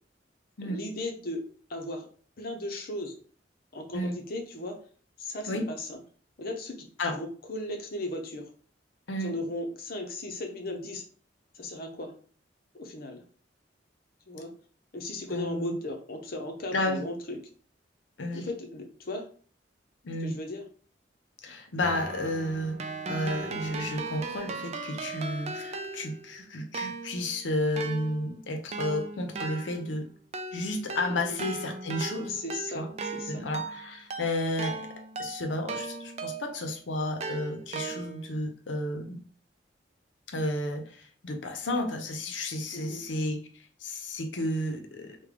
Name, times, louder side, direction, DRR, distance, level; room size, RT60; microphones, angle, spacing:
voice 1, 0.6-1.4 1.7-2.1 2.4-3.2 3.7-4.8 5.2-6.0 6.4-8.5 9.2-11.1 11.5-12.1 12.7-13.2 14.3-14.5 14.9-17.4 18.3-19.3 20.2-20.7 31.2-31.4 32.3-33.4 42.7-43.1, left 1 dB, 55° left, 3 dB, 0.7 m, -36 dB
voice 2, 15.3-15.8 16.7-17.1 18.2-18.5 20.0-20.3 21.4-30.1 30.5-32.4 32.7-33.0 33.3-34.9 35.2-39.2 40.3-43.5 43.8-45.2, left 1 dB, 90° left, 5 dB, 0.6 m, -32 dB
Keyboard (musical), 21.8-26.3 26.7-36.7 37.2-38.4, right 3 dB, 35° right, 0.3 m, -38 dB
3.5 x 2.2 x 3.3 m, 0.43 s
head